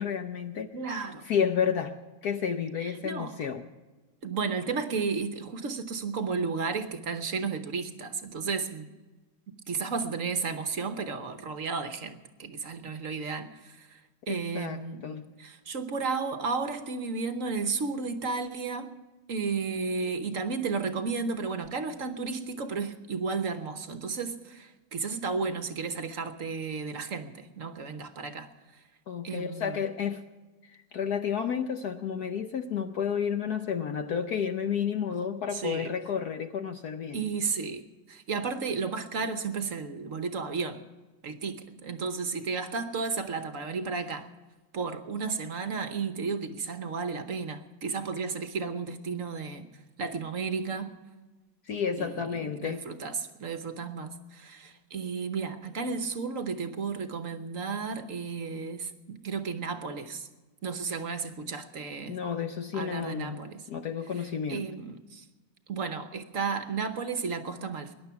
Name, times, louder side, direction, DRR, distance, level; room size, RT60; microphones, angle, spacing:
voice 1, 0.0-0.7 1.2-1.9 2.2-3.7 14.3-15.3 29.1-30.2 30.7-37.2 51.7-52.9 62.1-64.7, left 7 dB, 65° left, 7 dB, 1.0 m, -31 dB
voice 2, 0.7-1.2 2.8-3.4 4.2-8.9 9.5-14.0 14.3-15.0 15.4-18.9 19.3-28.5 29.2-29.8 35.5-35.9 37.1-40.8 41.2-44.3 44.7-49.7 50.0-51.0 52.0-60.3 60.6-62.2 62.7-63.6 64.2-65.2 65.7-67.9, right 4 dB, 50° right, 9 dB, 1.1 m, -33 dB
21.5 x 11.0 x 5.8 m, 1.2 s
omnidirectional pair, 2.3 m